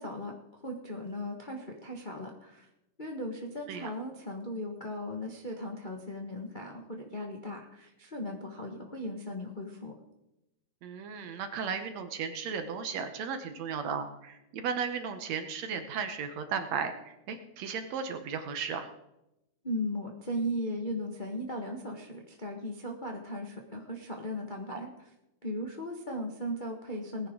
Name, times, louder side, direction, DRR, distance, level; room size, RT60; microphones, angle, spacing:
voice 1, 0.0-2.7 3.0-9.9 19.6-24.9 25.4-27.3, equal, 80° left, 1 dB, 0.4 m, -37 dB
voice 2, 10.8-18.9 24.7-24.8, right 6 dB, 65° right, 8 dB, 1.9 m, -35 dB
19.5 x 10.5 x 3.8 m, 0.90 s
omnidirectional pair, 3.8 m